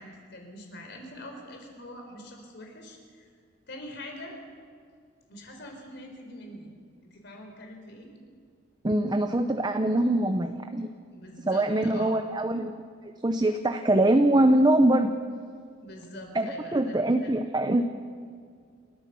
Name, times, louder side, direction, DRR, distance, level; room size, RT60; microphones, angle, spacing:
voice 1, 0.0-3.3 3.7-4.4 5.3-6.8 7.0-8.1 11.1-12.2 15.8-17.3, left 1 dB, 60° left, 3 dB, 4.4 m, -44 dB
voice 2, 8.8-10.9 11.5-15.2 16.3-18.0, right 1 dB, 20° right, 7 dB, 0.7 m, -23 dB
29.0 x 13.5 x 7.0 m, 2.2 s
head